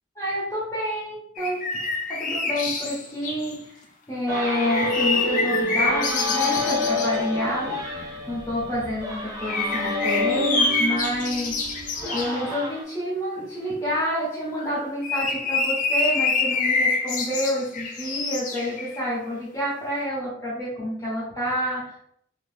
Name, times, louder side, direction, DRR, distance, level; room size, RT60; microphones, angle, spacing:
voice 1, 0.2-3.8 4.1-11.6 12.1-22.0, equal, 15° left, -6 dB, 0.8 m, -28 dB
sound 1, 1.4-3.6 4.4-7.2 9.4-12.4 14.6-19.1, left 4 dB, 45° left, 0.5 m, -26 dB
sound 2, 4.3-12.8, left 2 dB, 20° right, 0.6 m, -28 dB
2.6 x 2.4 x 3.2 m, 0.66 s
head